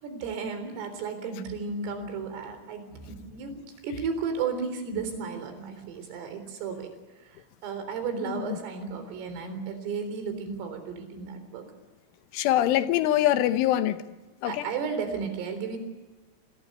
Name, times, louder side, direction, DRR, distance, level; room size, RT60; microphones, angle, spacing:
voice 1, 0.0-11.7 14.5-15.8, right 5 dB, 80° right, 6.4 m, -34 dB
voice 2, 8.2-8.6 12.3-14.1 14.4-14.7, left 13 dB, 80° left, 3.4 m, -24 dB
26.0 x 20.5 x 8.1 m
omnidirectional pair, 5.8 m